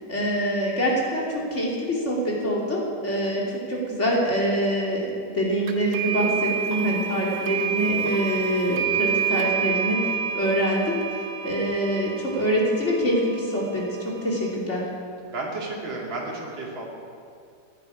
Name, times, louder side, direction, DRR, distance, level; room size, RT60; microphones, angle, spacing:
voice 1, 0.0-5.1 5.3-14.8, equal, 35° left, -4 dB, 3.1 m, -25 dB
sound 1, 5.7-14.5, right 7 dB, 60° right, 1.6 m, -29 dB
voice 2, 6.4-6.7 15.3-16.9, right 2 dB, 90° right, -3 dB, 3.2 m, -33 dB
18.5 x 11.0 x 5.0 m, 2.3 s
omnidirectional pair, 2.0 m